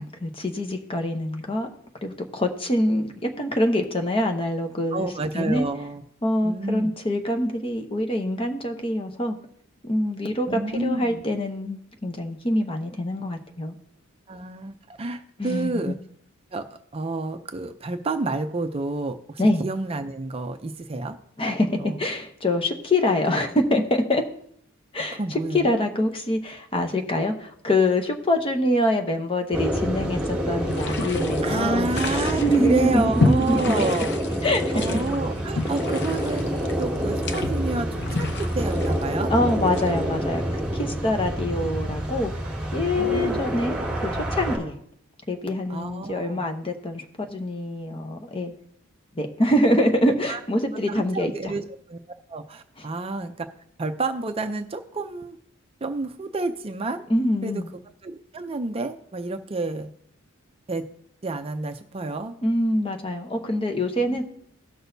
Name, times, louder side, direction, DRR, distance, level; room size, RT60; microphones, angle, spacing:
voice 1, 0.0-1.7 2.0-5.1 5.3-5.7 6.2-9.4 9.8-13.7 15.4-15.9 19.4-19.6 21.4-24.2 24.9-31.9 32.4-33.9 34.4-35.0 39.3-40.4 40.7-42.3 42.7-44.8 45.3-47.0 47.3-48.5 49.2-51.3 57.1-57.7 62.4-64.2, left 1 dB, 25° left, 4 dB, 0.9 m, -25 dB
voice 2, 4.9-6.0 6.4-6.9 10.5-11.2 14.3-15.9 16.5-16.7 16.9-21.2 21.8-22.0 25.0-25.8 31.4-34.2 34.7-39.3 43.0-43.5 45.7-46.5 50.3-50.4 50.9-51.6 51.9-52.0 52.3-53.5 53.8-55.4 55.8-57.0 57.4-57.6 58.0-59.9 60.7-60.9 61.2-62.3 64.1-64.2, right 3 dB, 30° right, 6 dB, 0.5 m, -29 dB
sound 1, 29.5-44.6, equal, 5° right, 2.5 m, -27 dB
sound 2, 30.7-40.2, left 3 dB, 55° left, 0.7 m, -31 dB
17.5 x 6.2 x 2.7 m, 0.68 s
head